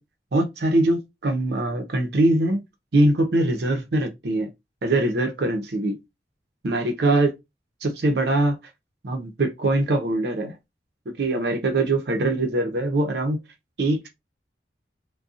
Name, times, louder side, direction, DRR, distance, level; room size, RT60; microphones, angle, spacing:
voice 1, 0.3-2.6 2.9-4.5 4.8-6.0 6.6-7.3 7.8-8.6 9.0-10.6 11.2-13.4 13.8-14.1, right 1 dB, 65° right, 0.6 m, -22 dB
2.5 x 2.2 x 2.4 m
head